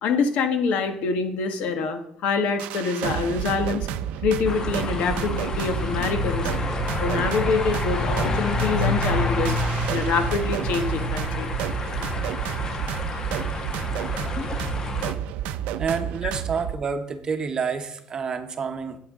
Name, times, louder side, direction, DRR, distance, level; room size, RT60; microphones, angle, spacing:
voice 1, 0.0-3.9 4.2-6.5 7.0-9.6 9.9-11.5 16.2-16.3, left 5 dB, 70° left, 8 dB, 1.3 m, -25 dB
sound 1, 2.6-16.7, right 10 dB, 90° right, 0.5 m, -30 dB
sound 2, 4.4-15.1, left 3 dB, 30° left, 1.0 m, -28 dB
voice 2, 15.8-19.0, right 5 dB, 35° right, 8 dB, 0.9 m, -28 dB
13.0 x 7.9 x 3.7 m, 0.71 s
cardioid pair, 140°, 2 cm